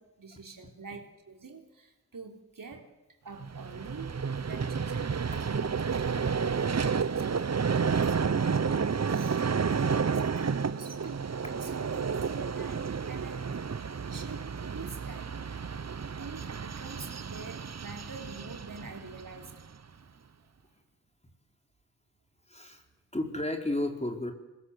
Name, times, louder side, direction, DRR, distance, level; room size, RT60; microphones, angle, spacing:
voice 1, 0.0-2.9 3.2-4.1 4.5-5.7 6.0-15.5 16.2-19.5, right 4 dB, 80° right, 2 dB, 3.8 m, -45 dB
Vehicle, 3.4-19.7, right 6 dB, 50° right, 0.9 m, -31 dB
voice 2, 22.5-22.8 23.1-24.3, left 1 dB, 20° left, 3 dB, 4.3 m, -32 dB
27.0 x 20.5 x 8.2 m, 1.0 s
cardioid pair, 55°, 33 cm